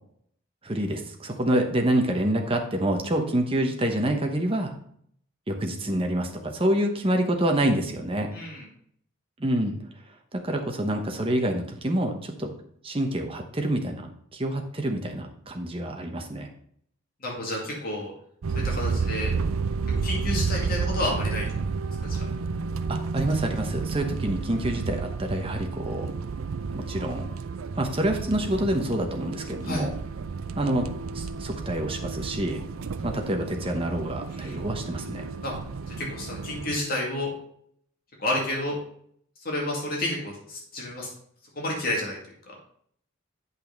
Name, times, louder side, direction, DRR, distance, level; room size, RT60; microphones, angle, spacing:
voice 1, 0.6-4.7 5.5-8.3 9.4-9.8 10.3-12.5 12.8-16.5 22.9-26.1 26.7-27.3 27.7-30.0 30.5-32.6 33.0-35.3, right 1 dB, 25° right, 3 dB, 1.0 m, -27 dB
voice 2, 8.3-8.6 17.2-18.1 18.6-19.3 19.9-21.5 22.0-22.2 29.7-29.9 34.3-34.6 35.4-35.5 36.0-37.3 38.2-38.8 39.4-41.1 41.6-42.2, left 1 dB, 45° left, -2 dB, 2.2 m, -30 dB
sound 1, 18.4-36.8, right 4 dB, 80° right, 0.5 m, -31 dB
8.7 x 5.5 x 4.0 m, 0.66 s
head